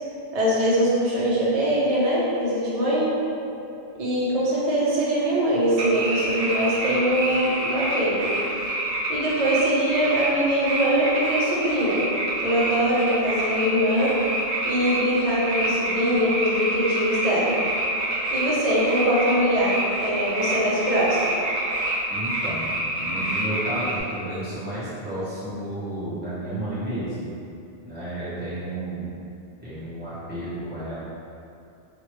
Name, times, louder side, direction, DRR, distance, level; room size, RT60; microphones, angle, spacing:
voice 1, 0.3-3.1 4.0-8.4 9.1-12.1 12.4-14.1 14.6-17.6 18.3-19.8 20.0-21.3, equal, 40° right, -7 dB, 0.6 m, -22 dB
sound 1, 5.8-9.6 9.9-24.0, right 1 dB, 75° right, 0.9 m, -27 dB
voice 2, 22.1-27.3 27.8-29.1 29.6-30.9, right 1 dB, 10° right, -13 dB, 0.9 m, -32 dB
2.9 x 2.5 x 3.0 m, 2.8 s
omnidirectional pair, 1.1 m